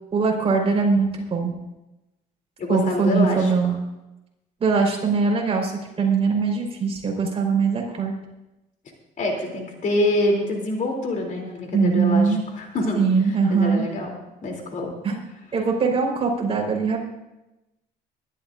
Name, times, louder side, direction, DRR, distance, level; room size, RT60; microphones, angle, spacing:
voice 1, 0.1-1.5 2.7-3.8 4.6-5.7 6.0-8.1 11.7-12.4 12.9-13.9 15.0-15.2 15.5-17.0, right 5 dB, 35° right, 0 dB, 4.5 m, -21 dB
voice 2, 2.6-3.5 9.2-13.0 13.5-14.1 14.4-15.0, left 1 dB, 50° left, 1 dB, 3.2 m, -25 dB
22.5 x 12.5 x 2.6 m, 0.96 s
cardioid pair, 110°, 17 cm